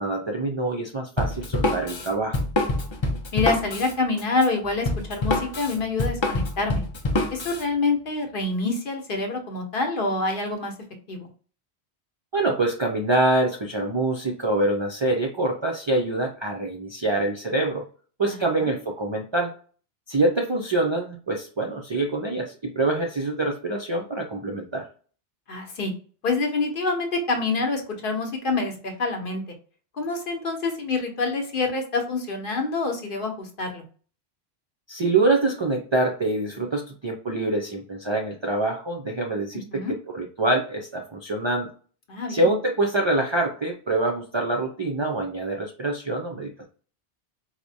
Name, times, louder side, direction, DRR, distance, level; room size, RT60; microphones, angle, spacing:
voice 1, 0.0-2.4 12.3-17.9 18.2-19.5 20.1-24.9 34.9-41.7 42.3-46.7, right 2 dB, 45° right, 0 dB, 0.3 m, -25 dB
Drum kit, 1.2-7.6, left 2 dB, 35° left, 0.5 m, -26 dB
voice 2, 3.3-6.8 7.3-10.7 11.1-11.3 18.3-18.4 18.6-18.7 25.5-25.9 26.2-29.4 30.0-33.8 39.7-39.9 42.1-42.5, left 3 dB, 60° left, 3 dB, 0.9 m, -26 dB
4.5 x 2.1 x 2.6 m, 0.40 s
omnidirectional pair, 1.1 m